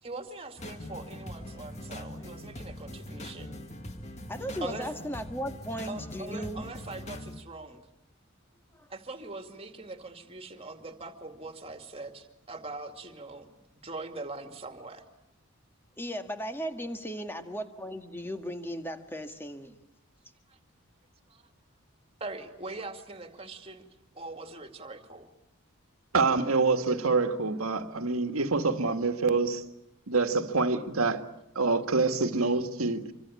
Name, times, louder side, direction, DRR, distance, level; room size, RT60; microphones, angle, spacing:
voice 1, 0.0-3.6 4.6-4.9 5.9-7.9 8.9-13.5 13.8-15.0 20.5-20.6 21.3-21.4 22.2-23.8 24.1-25.3, right 3 dB, 25° right, 7 dB, 2.4 m, -42 dB
sound 1, 0.6-7.4, left 1 dB, 30° left, 1.9 m, -42 dB
voice 2, 4.3-6.6 8.7-8.9 16.0-19.8, equal, 10° left, 7 dB, 1.8 m, -36 dB
voice 3, 26.1-29.6 30.1-31.2 31.6-33.0, right 3 dB, 85° right, 8 dB, 1.9 m, -26 dB
26.5 x 25.0 x 8.5 m, 0.81 s
head